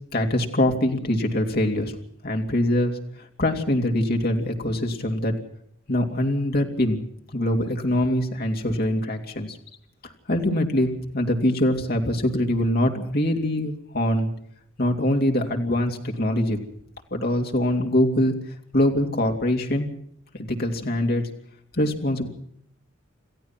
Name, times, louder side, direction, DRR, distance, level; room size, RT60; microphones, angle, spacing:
voice 1, 0.1-2.0 2.2-5.3 5.9-7.0 7.3-9.6 10.0-14.3 14.8-16.6 17.1-19.9 20.3-21.3 21.7-22.3, left 1 dB, 50° left, 2 dB, 3.1 m, -23 dB
29.0 x 15.0 x 6.0 m, 0.68 s
head